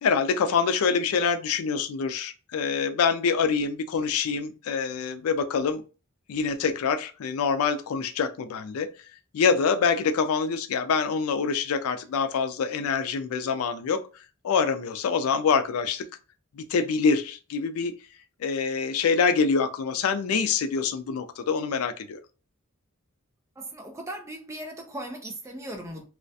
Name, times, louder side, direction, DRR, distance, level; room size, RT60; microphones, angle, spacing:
voice 1, 0.0-5.8 6.3-8.9 9.3-14.0 14.4-16.0 16.6-17.9 18.4-22.2, left 5 dB, 85° left, 0.4 m, -25 dB
voice 2, 23.6-26.1, right 1 dB, 15° right, 0.3 m, -38 dB
2.4 x 2.1 x 2.6 m
head